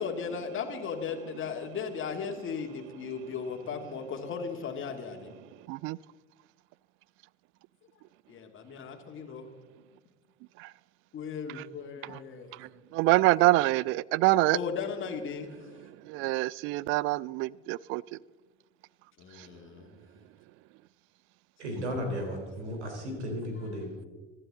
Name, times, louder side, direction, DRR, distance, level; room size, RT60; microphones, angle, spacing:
voice 1, 0.0-5.3 8.3-9.5 11.1-12.5 14.5-15.5 19.2-20.0, left 6 dB, 35° left, 2.3 m, -36 dB
voice 2, 12.9-14.6 16.1-18.0, right 19 dB, 35° right, 0.4 m, -25 dB
voice 3, 21.6-24.1, equal, 70° right, 3.7 m, -35 dB
24.0 x 12.0 x 3.7 m
figure-of-eight pair, 65°, 35 cm